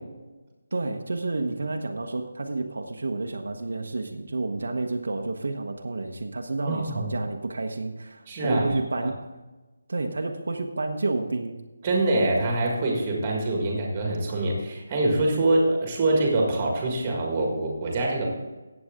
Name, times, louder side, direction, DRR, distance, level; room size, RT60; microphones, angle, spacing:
voice 1, 0.7-9.2 9.9-11.6, right 3 dB, 60° right, 3 dB, 1.1 m, -30 dB
voice 2, 6.6-7.1 8.3-9.1 11.8-18.3, right 2 dB, 15° right, 0 dB, 1.7 m, -25 dB
14.5 x 8.7 x 3.7 m, 1.2 s
hypercardioid pair, 180°, 0 cm